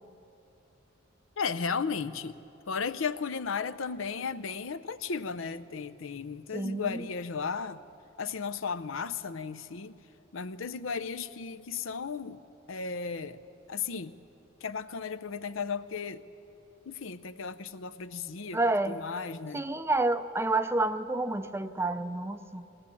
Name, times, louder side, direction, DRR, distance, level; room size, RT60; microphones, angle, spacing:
voice 1, 1.4-2.4 2.7-7.8 8.2-10.0 10.3-12.4 12.7-13.4 13.7-14.2 14.6-16.2 16.9-18.6 18.9-19.7, left 5 dB, 75° left, 13 dB, 0.7 m, -35 dB
voice 2, 6.5-7.1 18.5-19.0 19.5-22.7, right 2 dB, 10° right, 11 dB, 0.5 m, -29 dB
21.5 x 17.5 x 8.5 m, 2.8 s
head